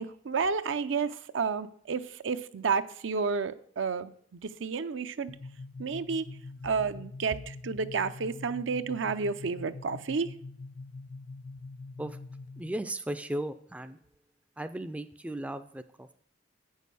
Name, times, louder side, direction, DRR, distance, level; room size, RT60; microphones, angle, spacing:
voice 1, 0.0-5.3 5.8-6.3 6.6-10.3, right 5 dB, 80° right, 0.5 m, -31 dB
sound 1, 5.3-12.8, left 3 dB, 65° left, 0.8 m, -44 dB
voice 2, 12.6-14.0 14.6-16.1, right 1 dB, 5° right, 0.3 m, -36 dB
8.3 x 6.4 x 6.9 m
head